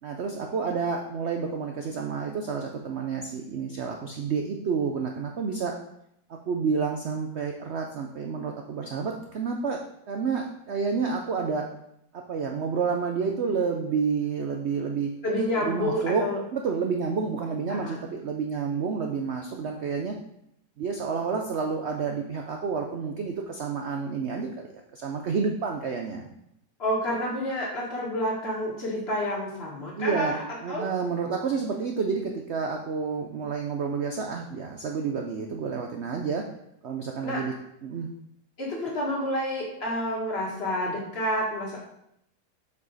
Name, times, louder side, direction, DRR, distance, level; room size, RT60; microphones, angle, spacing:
voice 1, 0.0-5.7 6.5-9.8 10.1-11.7 12.3-15.1 15.6-16.2 16.5-20.1 20.8-24.7 24.9-26.3 30.0-30.3 30.6-36.4 36.8-37.5 37.8-38.1, right 5 dB, 75° right, 2 dB, 0.6 m, -29 dB
voice 2, 15.2-16.4 17.7-18.0 26.8-30.4 30.7-30.9 37.2-37.5 38.6-41.8, equal, 35° left, -3 dB, 1.9 m, -29 dB
7.0 x 5.0 x 4.0 m, 0.77 s
omnidirectional pair, 1.9 m